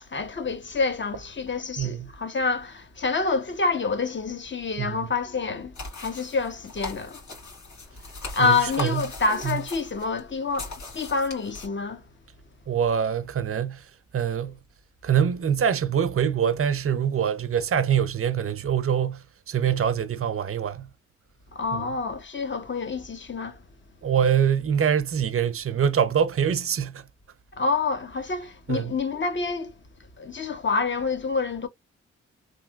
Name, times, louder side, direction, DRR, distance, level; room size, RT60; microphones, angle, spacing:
voice 1, 0.0-7.2 8.3-12.0 21.5-23.6 27.6-29.7 30.2-31.7, left 4 dB, 40° left, 1.0 m, -27 dB
voice 2, 1.8-2.1 4.8-4.9 8.4-9.1 9.4-9.6 12.7-13.8 14.1-14.6 15.0-20.9 21.7-21.8 24.0-27.0 28.7-28.9, right 8 dB, 50° right, 0.6 m, -24 dB
sound 1, 5.8-11.7, left 3 dB, 70° left, 1.8 m, -39 dB
3.2 x 2.8 x 2.3 m
supercardioid pair, 45°, 30 cm